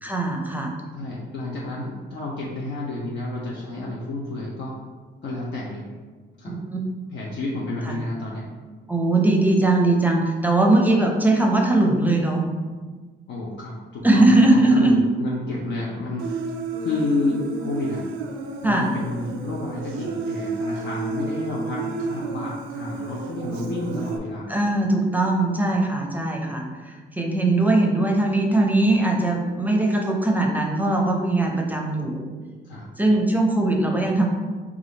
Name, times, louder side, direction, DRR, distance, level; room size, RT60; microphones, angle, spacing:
voice 1, 0.0-0.7 6.4-6.8 7.9-8.0 8.9-12.4 14.0-15.0 18.6-18.9 24.5-32.3 33.0-34.3, right 2 dB, 10° right, 0 dB, 0.6 m, -20 dB
voice 2, 0.9-4.8 5.2-5.9 6.4-6.5 7.1-8.5 13.3-16.3 16.8-18.0 18.6-24.5 32.6-32.9, left 2 dB, 65° left, -4 dB, 0.6 m, -30 dB
Human voice, 16.2-24.2, right 3 dB, 90° right, 0.4 m, -31 dB
3.5 x 2.4 x 3.9 m, 1.4 s
cardioid pair, 90°, 20 cm